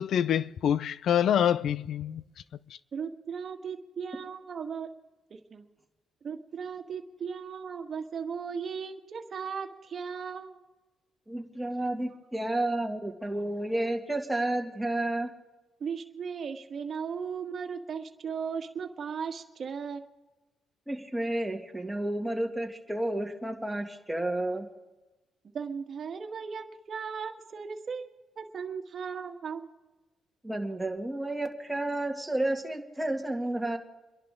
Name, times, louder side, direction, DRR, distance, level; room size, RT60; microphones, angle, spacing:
voice 1, 0.0-2.2, left 9 dB, 70° left, 0.5 m, -26 dB
voice 2, 2.9-4.9 5.3-5.6 6.2-10.6 15.8-20.1 25.5-28.1 28.4-29.7, right 6 dB, 50° right, 1.6 m, -37 dB
voice 3, 11.3-15.3 20.9-24.7 30.4-33.8, right 1 dB, 5° right, 2.2 m, -31 dB
28.5 x 11.0 x 3.7 m
cardioid pair, 90°, 0 cm